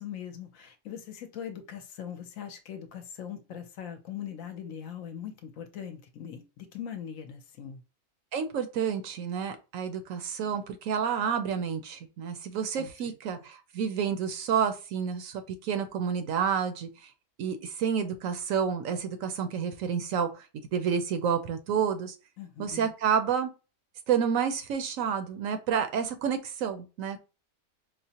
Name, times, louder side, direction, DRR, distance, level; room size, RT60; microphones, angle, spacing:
voice 1, 0.0-7.8 12.8-13.1 22.4-22.9, left 9 dB, 70° left, 0.9 m, -41 dB
voice 2, 8.3-16.9 17.4-20.4 20.7-22.1 22.6-23.5 24.1-27.2, right 7 dB, 70° right, 0.9 m, -29 dB
4.9 x 2.0 x 2.7 m
omnidirectional pair, 1.6 m